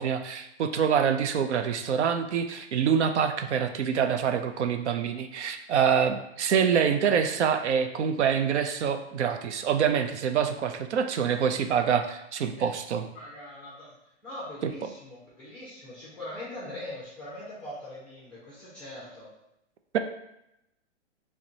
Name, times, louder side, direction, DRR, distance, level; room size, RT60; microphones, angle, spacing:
voice 1, 0.0-13.0, right 7 dB, 70° right, 7 dB, 0.5 m, -26 dB
voice 2, 13.1-19.3, left 1 dB, 5° left, -8 dB, 0.4 m, -42 dB
5.7 x 2.1 x 2.7 m, 0.83 s
hypercardioid pair, 155°, 36 cm